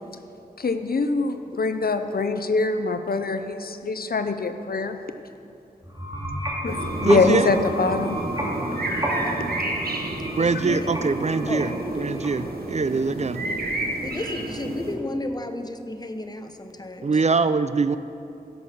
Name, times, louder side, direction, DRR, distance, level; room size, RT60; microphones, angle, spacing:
voice 1, 0.6-5.0 6.6-8.2, left 3 dB, 80° left, 8 dB, 0.6 m, -24 dB
sound 1, 5.8-12.6, equal, 25° right, 2.4 m, -32 dB
sound 2, 6.7-15.0, right 2 dB, 90° right, 1.2 m, -30 dB
voice 2, 7.0-7.5 10.4-11.7 12.0-13.5 17.0-18.0, right 4 dB, 45° right, 12 dB, 0.4 m, -23 dB
voice 3, 10.4-10.9 11.5-11.6 14.0-17.1, left 2 dB, 25° left, 6 dB, 0.9 m, -32 dB
16.0 x 6.4 x 6.3 m, 2.7 s
wide cardioid pair, 70°, 15 cm